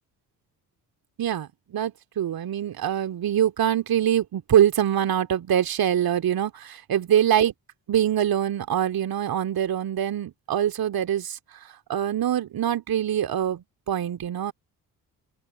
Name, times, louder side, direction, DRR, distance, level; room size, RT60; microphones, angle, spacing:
voice 1, 1.2-7.5 7.9-11.4 11.9-14.5, right 10 dB, 50° right, 2.9 m, -24 dB
open air
figure-of-eight pair, 45°, 46 cm